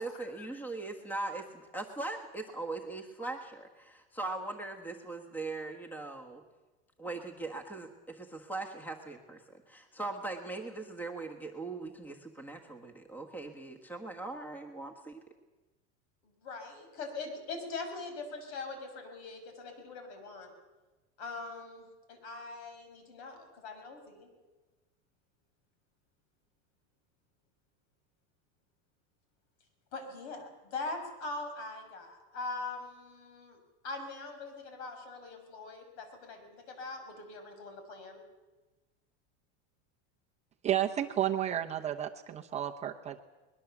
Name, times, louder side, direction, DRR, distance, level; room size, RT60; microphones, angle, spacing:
voice 1, 0.0-6.4 7.0-15.2, right 3 dB, 5° left, 5 dB, 1.4 m, -40 dB
voice 2, 16.2-20.5 21.2-24.3 29.9-33.6 33.8-38.2, left 3 dB, 65° left, 6 dB, 6.2 m, -42 dB
voice 3, 40.6-43.2, right 11 dB, 20° right, 3 dB, 0.7 m, -32 dB
22.5 x 21.0 x 7.2 m, 1.2 s
supercardioid pair, 170°, 35 cm